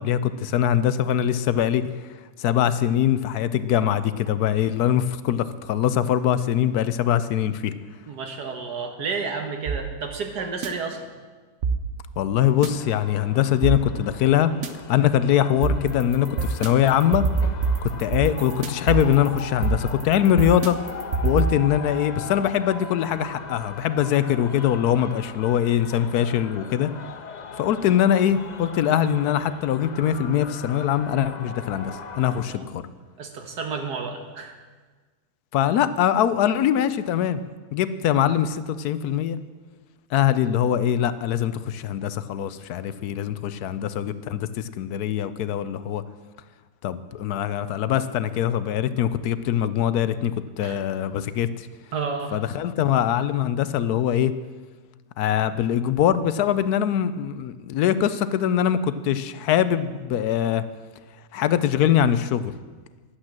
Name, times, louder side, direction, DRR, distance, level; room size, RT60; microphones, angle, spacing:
voice 1, 0.0-1.8 2.4-7.7 12.2-14.5 14.9-17.2 17.8-20.8 21.2-26.9 27.6-32.8 35.5-37.4 37.7-39.4 40.1-46.0 46.8-51.7 52.3-54.3 55.2-60.6 61.3-62.5, left 10 dB, 75° left, 13 dB, 1.1 m, -22 dB
voice 2, 8.1-11.1 32.3-32.6 33.2-34.5 50.6-50.8 51.9-52.4, right 4 dB, 80° right, 4 dB, 2.0 m, -31 dB
sound 1, 9.7-10.7 11.6-12.7 13.6-14.7 15.6-21.5, right 4 dB, 55° right, 1.0 m, -26 dB
sound 2, 12.6-32.5, left 5 dB, 60° left, 0.4 m, -39 dB
11.5 x 8.9 x 7.5 m, 1.4 s
omnidirectional pair, 1.7 m